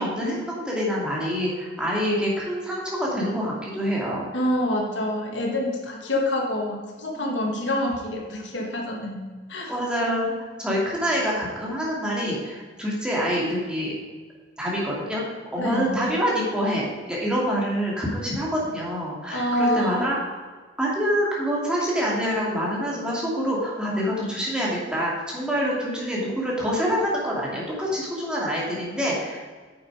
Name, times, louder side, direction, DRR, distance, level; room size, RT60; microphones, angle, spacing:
voice 1, 0.0-4.3 7.1-7.3 9.7-10.3 10.6-13.9 14.6-15.2 15.5-20.4 20.8-29.4, equal, 5° right, -5 dB, 2.7 m, -26 dB
voice 2, 4.3-9.2 9.5-9.8 15.6-15.9 19.3-20.1, left 1 dB, 75° left, 1 dB, 1.8 m, -26 dB
9.2 x 7.6 x 4.8 m, 1.5 s
head